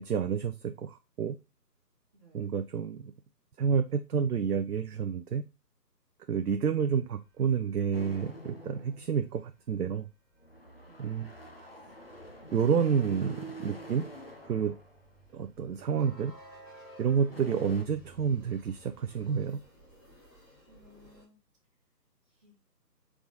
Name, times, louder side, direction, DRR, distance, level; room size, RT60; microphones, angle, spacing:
voice 1, 0.0-1.4 2.3-3.1 3.6-5.4 6.3-10.1 11.0-11.3 12.5-14.1 14.5-14.8 15.3-16.3 17.0-19.6, right 7 dB, 65° right, 8 dB, 0.6 m, -29 dB
voice 2, 2.1-2.5 10.8-11.2 20.7-21.4 22.2-22.6, equal, 20° right, -8 dB, 0.8 m, -60 dB
sound 1, 7.0-21.2, right 1 dB, 5° left, 1.2 m, -56 dB
sound 2, 7.9-9.6 10.4-15.2 15.8-16.1 16.8-16.9 17.1-17.8, equal, 40° left, 0.5 m, -47 dB
4.0 x 3.6 x 3.7 m, 0.28 s
figure-of-eight pair, 155°, 50 cm